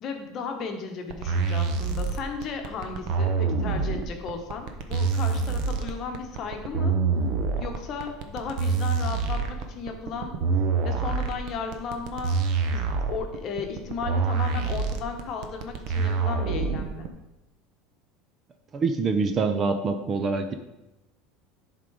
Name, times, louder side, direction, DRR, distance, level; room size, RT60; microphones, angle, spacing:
voice 1, 0.0-6.9 7.6-10.3 10.8-12.4 12.7-17.1, left 5 dB, 35° left, 4 dB, 1.0 m, -35 dB
sound 1, 1.1-17.1, right 4 dB, 50° right, 0.8 m, -26 dB
voice 2, 18.7-20.5, right 4 dB, 25° right, 7 dB, 0.5 m, -25 dB
10.5 x 3.7 x 4.7 m, 0.97 s
cardioid pair, 160°, 0 cm